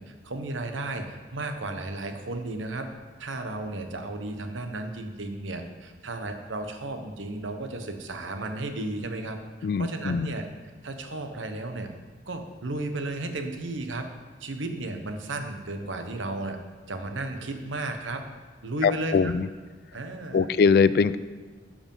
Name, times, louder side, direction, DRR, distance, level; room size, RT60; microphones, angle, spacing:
voice 1, 0.0-2.9 3.2-9.4 9.8-10.5 10.8-11.9 12.3-14.1 14.4-16.6 16.9-18.2 18.6-19.3 19.9-20.5, right 2 dB, 85° right, 6 dB, 1.0 m, -34 dB
voice 2, 9.6-10.3 18.8-19.5 20.3-21.2, left 5 dB, 55° left, 15 dB, 0.3 m, -22 dB
12.5 x 5.0 x 5.5 m, 1.4 s
head